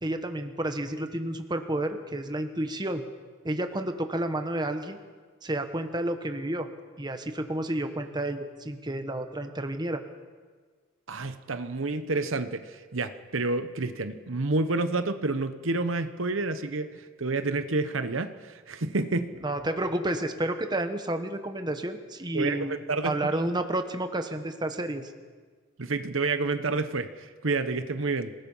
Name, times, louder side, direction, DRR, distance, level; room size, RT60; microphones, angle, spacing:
voice 1, 0.0-3.0 3.4-5.0 5.4-6.7 7.0-10.0 19.4-22.8 23.0-25.1, right 1 dB, 20° right, 7 dB, 1.2 m, -30 dB
voice 2, 11.1-19.3 22.3-23.4 25.8-28.3, right 3 dB, 70° right, 10 dB, 1.0 m, -29 dB
27.0 x 19.0 x 5.6 m, 1.5 s
head